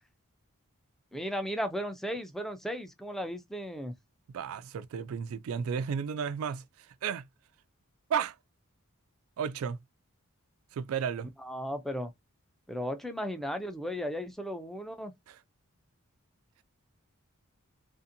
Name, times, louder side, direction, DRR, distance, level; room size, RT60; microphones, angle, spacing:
voice 1, 1.1-3.9 11.4-12.1 12.7-15.1, equal, ahead, 0.4 m, -35 dB
voice 2, 4.3-7.3 8.1-8.4 9.4-9.8 10.7-11.3 15.3-15.4, right 7 dB, 70° right, 0.3 m, -33 dB
2.6 x 2.5 x 2.6 m
head